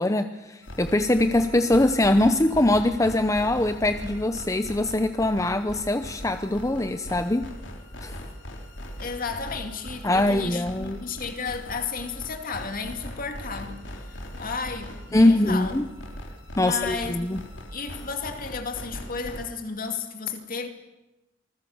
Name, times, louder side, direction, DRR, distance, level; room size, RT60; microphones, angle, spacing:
voice 1, 0.0-7.5 8.0-8.2 10.0-11.0 15.1-15.8 16.6-17.4, left 1 dB, 15° left, 0.8 m, -22 dB
sound 1, 0.6-19.4, equal, 75° left, 3.4 m, -40 dB
voice 2, 9.0-15.7 16.6-17.2 17.7-20.7, left 5 dB, 50° left, 2.5 m, -33 dB
27.0 x 20.5 x 7.2 m
head